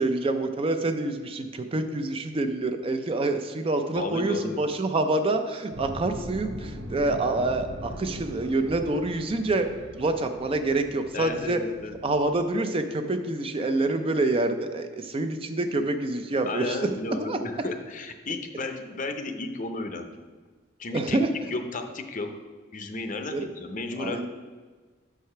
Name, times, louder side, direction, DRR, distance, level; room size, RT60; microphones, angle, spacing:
voice 1, 0.0-9.7 10.0-11.6 12.0-16.9 17.2-17.4 20.9-21.3 23.3-23.5 24.0-24.3, right 2 dB, 30° right, 7 dB, 0.4 m, -27 dB
voice 2, 3.9-4.7 11.1-12.0 16.5-20.2 20.8-21.2 21.5-22.3 22.7-24.2, left 3 dB, 45° left, 6 dB, 0.6 m, -33 dB
sound 1, 5.7-12.5, equal, 75° right, 1.1 m, -40 dB
6.5 x 4.8 x 5.6 m, 1.4 s
head